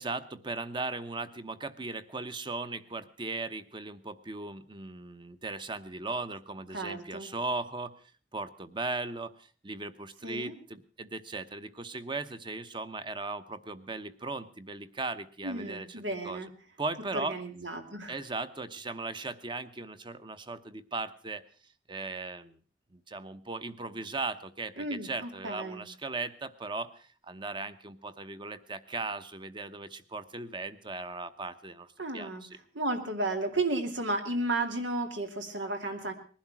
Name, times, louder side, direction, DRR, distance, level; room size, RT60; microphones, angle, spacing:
voice 1, 0.0-7.9 8.3-9.3 9.6-15.9 16.2-16.4 16.8-17.4 18.1-21.4 21.9-22.6 22.9-32.5, right 3 dB, 25° right, 12 dB, 0.9 m, -37 dB
voice 2, 6.7-7.3 10.2-10.5 15.4-16.5 17.1-18.2 24.8-25.8 32.0-32.4 32.7-36.1, right 2 dB, 90° right, 6 dB, 2.7 m, -33 dB
20.0 x 11.5 x 6.0 m, 0.40 s
head